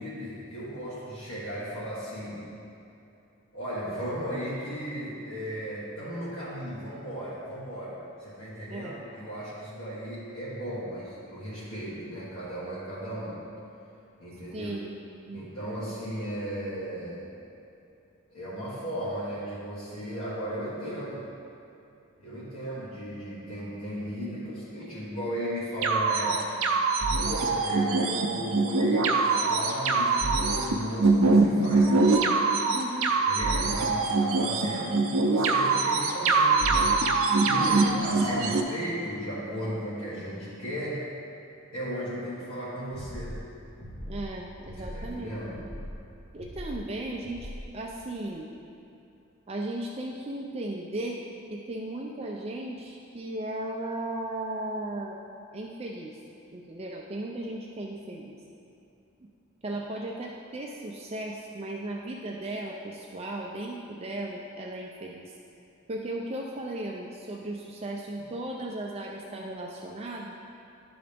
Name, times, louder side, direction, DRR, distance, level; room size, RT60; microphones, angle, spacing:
voice 1, 0.0-2.5 3.5-13.4 14.2-14.7 15.3-17.3 18.3-21.3 22.2-26.4 27.2-32.0 32.9-36.6 37.4-41.0 41.7-43.4 44.8-45.7, equal, 90° left, -10 dB, 1.5 m, -36 dB
voice 2, 8.7-9.0 14.5-14.9 15.3-15.4 32.7-33.2 37.6-38.6 44.1-45.4 46.3-48.5 49.5-51.2 51.5-55.2 55.5-56.2 56.5-58.4 59.6-65.3 65.9-70.3, right 1 dB, 30° right, -1 dB, 0.4 m, -36 dB
sound 1, 25.8-38.6, right 3 dB, 80° right, 0.5 m, -23 dB
sound 2, 42.9-43.4 43.8-44.3 44.6-45.1 45.5-45.9 46.4-46.8 47.2-47.6, equal, 45° left, 1.2 m, -40 dB
11.0 x 3.9 x 3.4 m, 2.8 s
head